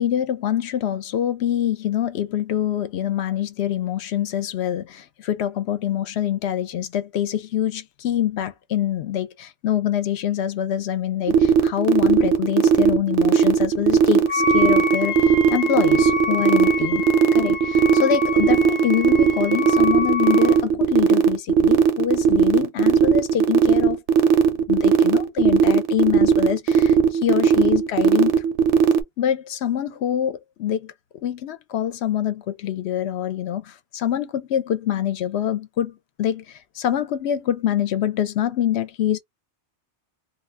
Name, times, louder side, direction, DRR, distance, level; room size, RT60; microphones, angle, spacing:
voice 1, 0.0-17.0 17.3-24.0 24.7-28.4 29.2-30.9 31.2-36.4 36.8-39.2, left 10 dB, 70° left, 0.8 m, -25 dB
sound 1, 11.3-29.0, right 7 dB, 90° right, 0.9 m, -16 dB
Wind instrument woodwind instrument, 14.3-20.6, left 4 dB, 15° left, 0.5 m, -27 dB
2.4 x 2.3 x 3.2 m
omnidirectional pair, 1.2 m